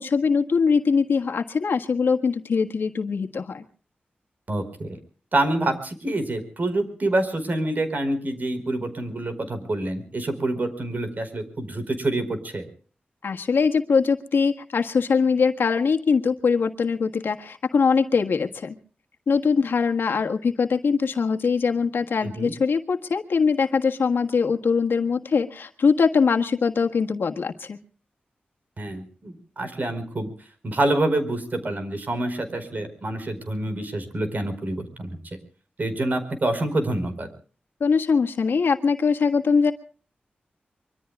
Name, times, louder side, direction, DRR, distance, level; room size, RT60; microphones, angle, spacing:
voice 1, 0.0-3.6 13.2-18.7 19.3-27.8 37.8-39.7, left 5 dB, 85° left, 5 dB, 1.6 m, -22 dB
voice 2, 4.5-5.0 5.3-12.7 22.2-22.5 28.8-30.3 30.6-35.1 35.8-37.3, right 2 dB, 55° right, 9 dB, 4.7 m, -27 dB
24.5 x 23.5 x 2.4 m, 0.41 s
cardioid pair, 70°, 4 cm